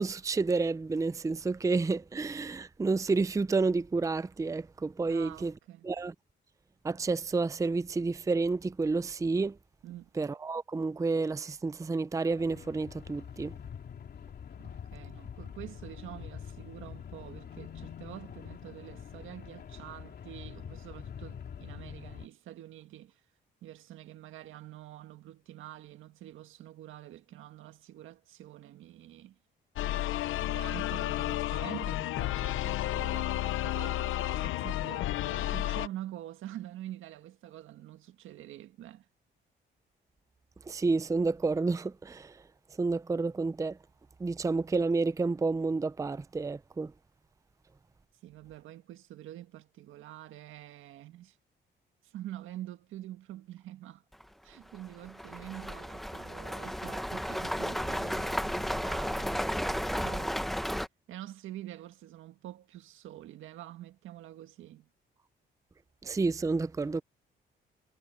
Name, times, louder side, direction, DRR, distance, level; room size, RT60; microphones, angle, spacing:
voice 1, 0.0-5.5 5.8-6.1 6.8-9.6 10.2-13.5 40.7-42.4 42.8-43.8 44.2-46.9 66.0-67.0, right 3 dB, 15° right, 0.5 m, -30 dB
voice 2, 5.1-5.9 9.8-10.1 14.6-23.2 23.6-29.4 30.4-39.1 48.2-51.4 52.0-54.0 54.4-60.4 61.1-64.9, right 13 dB, 85° right, 1.8 m, -46 dB
sound 1, 12.4-22.3, left 8 dB, 55° left, 2.9 m, -45 dB
sound 2, 29.8-35.9, left 14 dB, 85° left, 0.8 m, -32 dB
sound 3, 54.1-54.2 54.7-60.9, equal, ahead, 1.0 m, -33 dB
cardioid pair, 90°, 20 cm